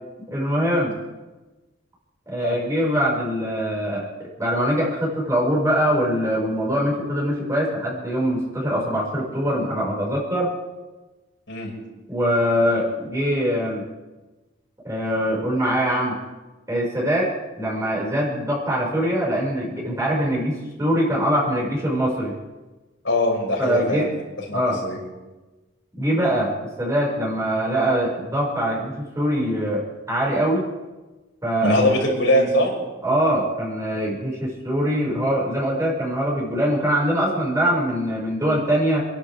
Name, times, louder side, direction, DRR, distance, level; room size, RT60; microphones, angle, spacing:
voice 1, 0.3-0.9 2.3-4.1 4.4-10.6 12.1-13.8 14.8-16.2 16.7-17.3 17.6-22.3 23.6-24.1 24.5-24.8 26.0-26.5 26.8-29.8 30.1-30.7 31.4-31.8 33.0-39.1, equal, 15° right, -5 dB, 5.9 m, -23 dB
voice 2, 23.0-24.2 24.5-25.0 31.6-32.7, left 1 dB, 85° left, -2 dB, 6.0 m, -21 dB
28.5 x 11.5 x 3.6 m, 1.2 s
head